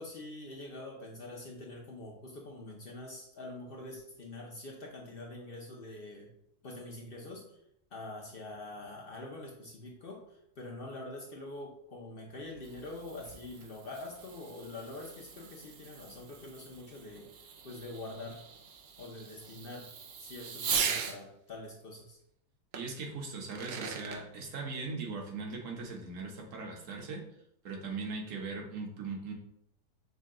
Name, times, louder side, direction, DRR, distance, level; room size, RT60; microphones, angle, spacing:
voice 1, 0.0-6.3 6.6-7.5 7.9-18.4 19.0-19.9 20.2-22.2, left 2 dB, 55° left, -1 dB, 0.7 m, -45 dB
Fireworks, 12.3-21.2 22.7-22.8 23.3-24.2, right 6 dB, 90° right, 0.5 m, -40 dB
voice 2, 22.7-27.2 27.6-29.3, right 4 dB, 55° right, 1 dB, 1.2 m, -39 dB
6.5 x 2.2 x 3.7 m, 0.75 s
omnidirectional pair, 1.7 m